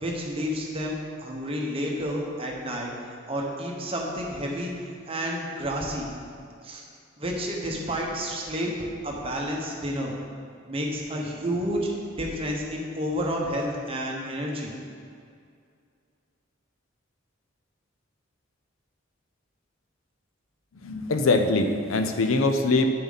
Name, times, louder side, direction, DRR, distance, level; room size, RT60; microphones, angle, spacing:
voice 1, 0.0-2.9 3.3-4.7 5.1-6.1 6.6-6.8 7.2-8.7 9.0-10.1 10.7-14.7, equal, 30° right, -2 dB, 1.1 m, -30 dB
voice 2, 20.8-22.9, left 3 dB, 90° left, 6 dB, 0.6 m, -23 dB
8.6 x 6.7 x 4.1 m, 2.3 s
head